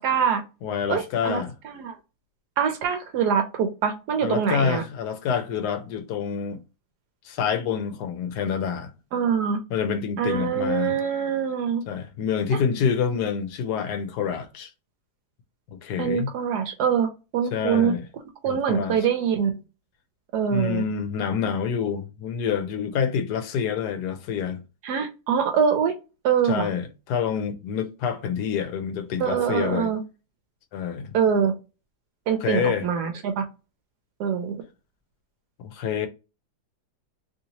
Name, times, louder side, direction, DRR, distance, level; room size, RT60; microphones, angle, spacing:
voice 1, 0.0-0.4 0.9-1.9 2.6-4.8 9.1-9.6 10.2-11.8 16.0-17.1 17.3-17.9 18.4-19.5 20.3-20.8 24.8-25.9 26.2-26.7 29.2-30.0 31.1-31.5 32.3-33.4 34.2-34.6, right 7 dB, 80° right, 1.2 m, -24 dB
voice 2, 0.6-1.5 4.2-6.6 7.2-8.9 9.7-11.0 11.8-14.7 15.7-16.3 17.5-18.1 18.5-19.0 20.5-24.6 26.4-29.9 30.7-31.1 32.4-32.9 35.6-36.1, left 7 dB, 85° left, 1.2 m, -27 dB
3.1 x 2.7 x 2.8 m
omnidirectional pair, 1.7 m